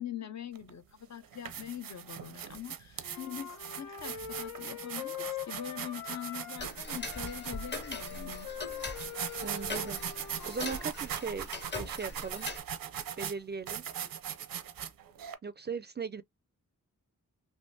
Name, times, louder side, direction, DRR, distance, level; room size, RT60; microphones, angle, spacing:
voice 1, 0.0-8.5, left 10 dB, 55° left, 0.5 m, -43 dB
sound 1, 0.5-0.7 1.2-15.3, right 9 dB, 85° right, 0.6 m, -40 dB
Wind instrument woodwind instrument, 3.0-6.7 7.0-10.9, left 8 dB, 80° left, 1.0 m, -43 dB
Tick-tock, 6.6-12.6, left 3 dB, 30° left, 0.9 m, -42 dB
voice 2, 9.4-12.5 13.2-13.8 15.4-16.2, right 5 dB, 30° right, 0.4 m, -39 dB
3.4 x 2.8 x 2.6 m
wide cardioid pair, 75°, 33 cm